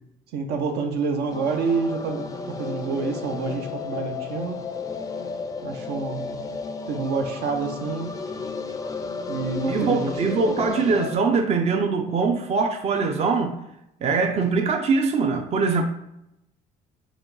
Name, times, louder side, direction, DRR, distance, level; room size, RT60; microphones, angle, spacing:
voice 1, 0.3-4.6 5.6-6.5 6.9-8.1 9.3-10.1, right 4 dB, 75° right, 0.7 m, -28 dB
sound 1, 1.3-11.2, left 4 dB, 20° left, 0.4 m, -33 dB
voice 2, 9.7-13.6 14.0-15.8, right 4 dB, 40° right, 0.5 m, -22 dB
4.9 x 2.3 x 3.9 m
cardioid pair, 110°, 17 cm